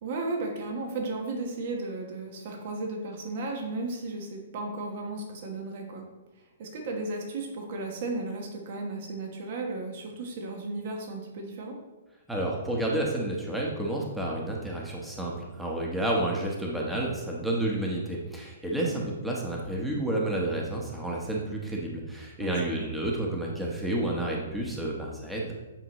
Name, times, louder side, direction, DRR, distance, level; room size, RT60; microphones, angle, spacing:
voice 1, 0.0-6.1 6.6-11.8 18.8-19.0 22.4-22.9, right 2 dB, 50° right, 2 dB, 1.2 m, -35 dB
voice 2, 12.3-25.5, right 1 dB, 5° right, -3 dB, 1.1 m, -30 dB
8.8 x 4.5 x 3.1 m, 1.1 s
hypercardioid pair, 135°, 0 cm